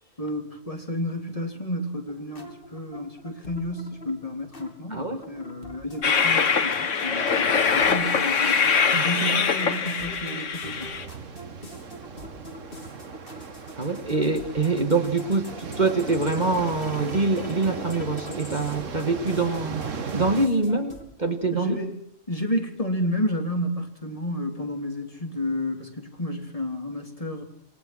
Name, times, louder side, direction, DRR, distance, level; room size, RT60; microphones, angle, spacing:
voice 1, 0.2-8.8 9.0-10.9 21.5-21.9 22.3-27.4, left 1 dB, 25° left, 3.4 m, -31 dB
sound 1, 2.1-21.0, left 1 dB, 45° left, 4.3 m, -46 dB
voice 2, 4.9-5.2 8.9-9.1 13.8-21.8, right 3 dB, 35° right, 1.9 m, -25 dB
Train, 6.0-11.0, left 6 dB, 75° left, 1.7 m, -23 dB
sound 2, 10.6-20.5, right 5 dB, 75° right, 1.8 m, -36 dB
28.0 x 21.0 x 6.2 m
omnidirectional pair, 1.3 m